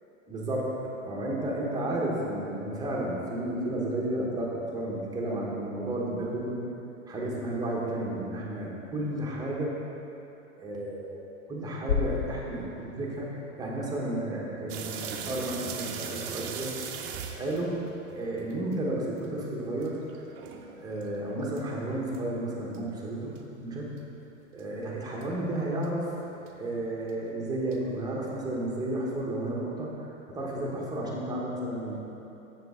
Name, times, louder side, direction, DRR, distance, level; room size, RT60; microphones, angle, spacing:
voice 1, 0.3-6.6 7.1-9.7 10.6-13.3 13.6-16.7 17.4-17.7 18.1-20.0 20.8-23.3 23.6-23.9 24.5-26.1 26.5-31.9, right 1 dB, 10° right, -4 dB, 1.0 m, -32 dB
sound 1, 11.9-14.0, left 7 dB, 75° left, 0.7 m, -33 dB
sound 2, 14.7-18.8 19.2-19.3 19.8-21.0 21.6-21.7 22.1-22.2 22.7-22.8 23.4-23.5 24.0-24.1 24.6-24.7 25.2-25.3 25.8-25.9 26.5-26.6 27.1-27.2 27.7-27.8, right 7 dB, 40° right, 0.6 m, -38 dB
7.6 x 6.4 x 3.7 m, 3.0 s
hypercardioid pair, 135°, 40 cm